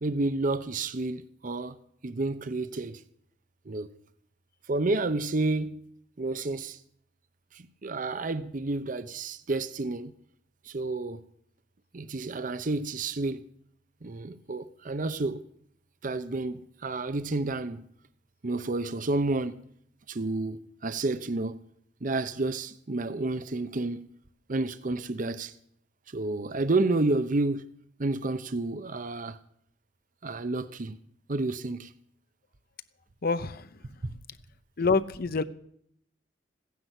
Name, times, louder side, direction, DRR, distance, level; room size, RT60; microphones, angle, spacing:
voice 1, 0.0-3.0 3.7-3.9 4.7-5.8 6.2-6.8 7.5-10.1 10.6-11.2 11.9-13.4 14.0-15.4 16.0-17.9 18.4-19.6 20.1-21.6 22.0-24.0 24.5-25.5 26.1-27.6 28.0-29.4 30.2-31.0 31.3-31.9 34.0-34.1, right 2 dB, 45° right, 0.7 m, -30 dB
voice 2, 33.2-33.7 34.8-35.4, left 4 dB, 55° left, 0.7 m, -26 dB
15.5 x 10.5 x 8.1 m
head